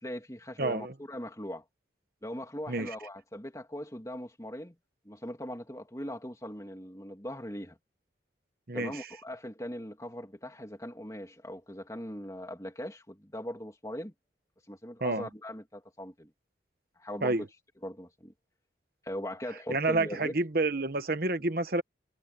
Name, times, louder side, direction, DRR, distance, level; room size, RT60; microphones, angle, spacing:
voice 1, 0.0-1.6 2.2-4.7 5.0-7.8 8.7-14.1 14.7-16.3 17.0-17.5 17.8-18.3 19.0-20.3, equal, 15° left, 2.7 m, -40 dB
voice 2, 0.6-0.9 2.7-2.9 8.7-9.1 15.0-15.3 17.2-17.4 19.7-21.8, right 2 dB, 50° right, 1.2 m, -29 dB
head